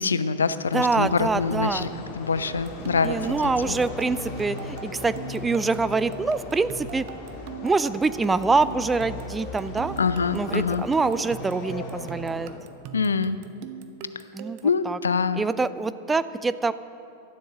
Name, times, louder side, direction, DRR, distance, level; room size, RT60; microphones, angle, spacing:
voice 1, 0.0-1.9 2.2-3.4 3.7-3.8 10.0-10.9 12.9-13.4 14.6-15.4, left 5 dB, 70° left, 13 dB, 0.5 m, -25 dB
sound 1, 0.7-12.6, left 3 dB, 45° left, 2.3 m, -38 dB
voice 2, 0.7-1.9 3.0-7.1 7.6-10.0 10.3-12.5 14.3-15.0 15.4-16.7, right 4 dB, 10° right, 15 dB, 0.4 m, -25 dB
sound 2, 2.5-14.8, right 7 dB, 45° right, 0.8 m, -41 dB
12.5 x 11.5 x 6.4 m, 2.5 s
figure-of-eight pair, 90°, 0 cm